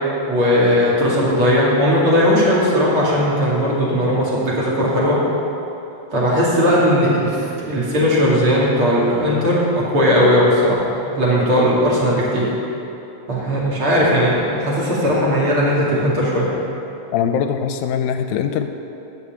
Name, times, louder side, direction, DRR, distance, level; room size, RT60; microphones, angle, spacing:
voice 1, 0.3-5.2 6.1-10.8 11.2-12.5 13.3-16.5, equal, 45° right, -6 dB, 3.0 m, -17 dB
voice 2, 17.1-18.7, left 8 dB, 80° left, 8 dB, 1.9 m, -21 dB
13.0 x 5.5 x 9.0 m, 2.9 s
omnidirectional pair, 3.6 m